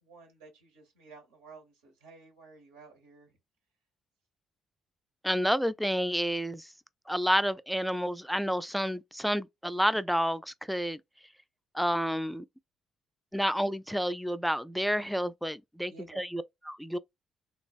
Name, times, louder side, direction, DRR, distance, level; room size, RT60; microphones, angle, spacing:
voice 1, 0.0-3.4 15.9-16.2, right 4 dB, 85° right, 1.0 m, -53 dB
voice 2, 5.2-6.7 7.1-11.0 11.7-12.4 13.3-16.4 16.7-17.0, equal, ahead, 0.3 m, -29 dB
3.2 x 2.0 x 2.3 m
hypercardioid pair, 45°, 0 cm